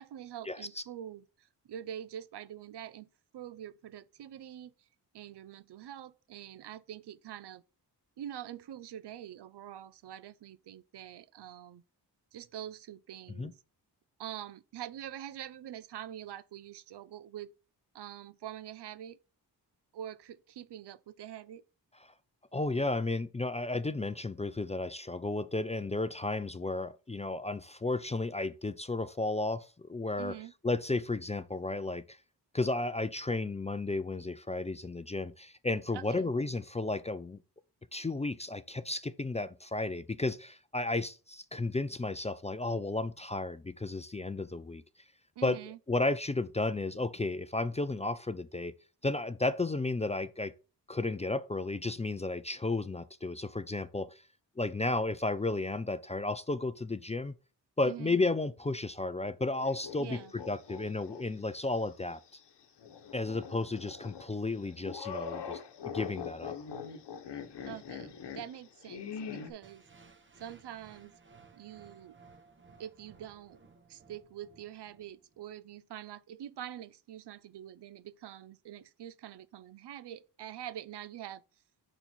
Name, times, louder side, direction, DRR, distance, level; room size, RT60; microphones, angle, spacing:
voice 1, 0.0-3.1 3.3-4.9 5.1-7.6 8.2-11.8 12.3-13.6 14.2-17.5 17.9-19.2 19.9-21.6 30.2-30.5 35.9-36.3 45.4-45.8 57.8-58.2 60.0-60.3 67.6-69.8 70.4-71.1 71.5-72.2 72.8-73.6 73.9-81.4, right 11 dB, 70° right, 0.6 m, -45 dB
voice 2, 22.5-30.4 30.6-32.2 32.5-37.4 37.9-44.8 45.4-45.6 45.9-48.7 49.0-50.5 50.9-54.2 54.6-57.4 57.8-62.2 63.1-66.5, left 2 dB, 15° left, 0.4 m, -33 dB
sound 1, 59.6-61.2 61.6-61.7 62.8-69.5, left 6 dB, 70° left, 1.0 m, -42 dB
sound 2, 69.6-75.6, right 4 dB, 25° right, 1.0 m, -59 dB
5.4 x 4.4 x 4.3 m
cardioid pair, 75°, 42 cm